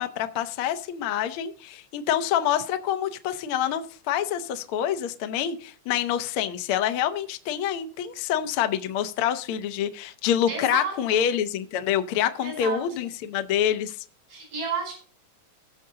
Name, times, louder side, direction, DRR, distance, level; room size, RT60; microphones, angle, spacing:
voice 1, 0.0-14.0, left 10 dB, 75° left, 8 dB, 1.2 m, -26 dB
voice 2, 10.5-11.2 12.4-13.0 14.3-14.9, right 5 dB, 85° right, 1 dB, 6.1 m, -32 dB
18.0 x 6.6 x 2.8 m, 0.41 s
omnidirectional pair, 3.6 m